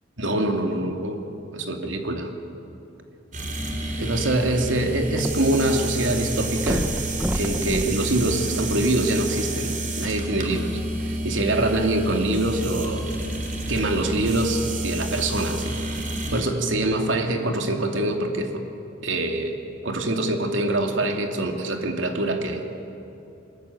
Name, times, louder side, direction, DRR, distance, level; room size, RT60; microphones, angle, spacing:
voice 1, 0.2-1.2 1.5-2.3 4.0-6.9 7.3-10.7 11.0-13.1 13.7-15.7 16.3-18.5 19.0-19.6 19.8-22.6, right 1 dB, 80° right, 3 dB, 2.5 m, -24 dB
sound 1, 3.3-16.4, right 1 dB, 45° right, 3.9 m, -29 dB
sound 2, 4.4-5.8 6.1-6.2 6.6-9.2 9.9-10.0, equal, 5° right, 0.8 m, -31 dB
24.5 x 21.0 x 9.8 m, 2.8 s
head